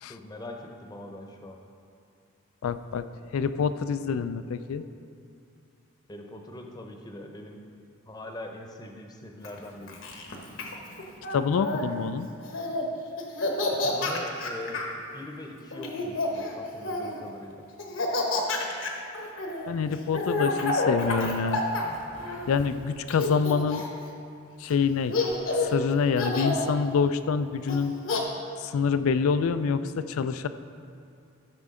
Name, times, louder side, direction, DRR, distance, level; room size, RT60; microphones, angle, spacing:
voice 1, 0.1-1.6 6.1-7.6 8.1-10.0 13.7-14.9 15.1-17.6, left 1 dB, 20° left, 3 dB, 0.7 m, -42 dB
voice 2, 2.6-3.0 3.3-4.8 11.3-12.3 19.7-21.6 22.5-23.8 24.6-25.1 25.6-27.9 28.6-30.5, left 6 dB, 85° left, 12 dB, 0.3 m, -26 dB
Laughter, 9.4-11.8 12.4-12.9 13.2-14.9 15.7-17.2 17.8-22.7 23.1-24.0 24.7-24.8 25.1-25.8 26.2-26.7 27.7-28.2, left 2 dB, 70° left, 1.1 m, -29 dB
13.5 x 6.0 x 3.7 m, 2.5 s
head